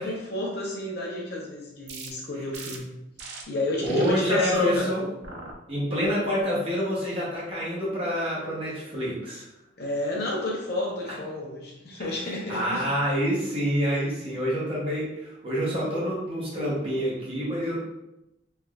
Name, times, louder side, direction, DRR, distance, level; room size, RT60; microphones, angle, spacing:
voice 1, 0.0-2.9 3.5-4.9 9.8-12.9, left 1 dB, 55° left, -2 dB, 0.8 m, -30 dB
sound 1, 1.9-2.1 2.5-2.8 3.2-3.4 3.8-4.1 4.5-4.8 5.2-5.5 6.0-6.4, right 4 dB, 60° right, 0.4 m, -41 dB
voice 2, 3.8-5.1 5.7-9.4 12.0-17.8, equal, 30° right, -7 dB, 0.8 m, -27 dB
3.3 x 2.5 x 2.3 m, 0.90 s
head